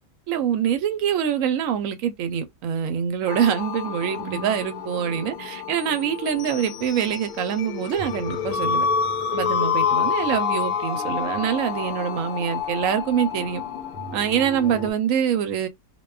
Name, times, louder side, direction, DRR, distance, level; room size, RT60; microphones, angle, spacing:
voice 1, 0.3-8.9 9.3-13.6 14.1-15.7, right 8 dB, 70° right, 0.9 m, -25 dB
sound 1, 3.3-14.9, left 6 dB, 80° left, 1.2 m, -28 dB
2.6 x 2.2 x 2.3 m
omnidirectional pair, 1.6 m